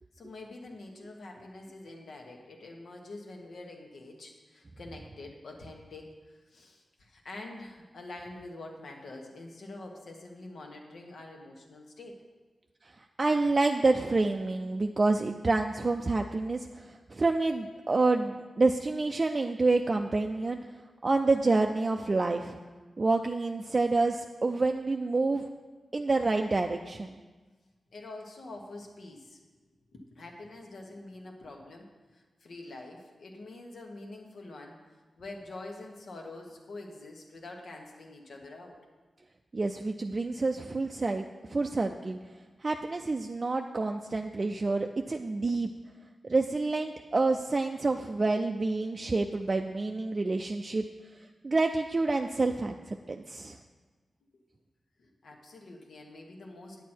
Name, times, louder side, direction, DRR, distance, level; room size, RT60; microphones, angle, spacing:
voice 1, 0.2-12.2 27.9-29.4 29.9-31.9 32.1-34.8 35.2-38.8 55.0-56.8, left 2 dB, 75° left, 1 dB, 1.4 m, -46 dB
voice 2, 13.2-20.6 21.0-22.6 23.0-25.4 25.9-27.2 39.5-42.2 42.6-45.7 46.3-50.8 51.4-53.6, right 3 dB, 35° right, 4 dB, 0.4 m, -28 dB
9.4 x 8.2 x 4.5 m, 1.3 s
wide cardioid pair, 105°, 0 cm